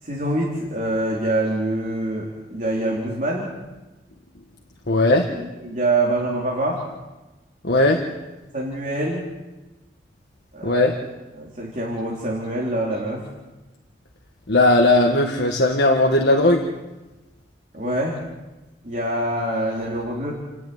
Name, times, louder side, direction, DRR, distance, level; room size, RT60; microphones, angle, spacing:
voice 1, 0.0-3.5 5.3-6.8 8.5-9.3 10.5-11.0 11.3-13.2 17.7-18.2 18.8-20.3, right 1 dB, 45° right, -4 dB, 3.8 m, -25 dB
voice 2, 4.9-5.3 7.6-8.1 10.6-10.9 14.5-16.7, left 2 dB, 65° left, 1 dB, 1.6 m, -17 dB
29.5 x 10.0 x 9.5 m, 1.1 s
head